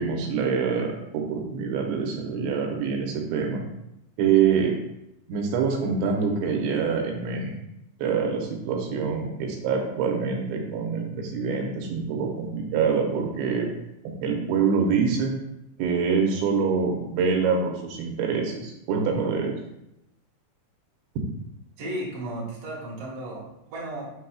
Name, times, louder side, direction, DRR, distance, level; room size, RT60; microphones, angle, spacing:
voice 1, 0.0-3.6 4.2-4.8 5.3-7.6 8.0-13.7 14.0-15.3 15.8-19.6, right 5 dB, 85° right, 1 dB, 3.1 m, -25 dB
voice 2, 21.8-24.1, right 1 dB, 50° right, -4 dB, 1.8 m, -34 dB
8.2 x 6.1 x 2.3 m, 0.85 s
omnidirectional pair, 5.1 m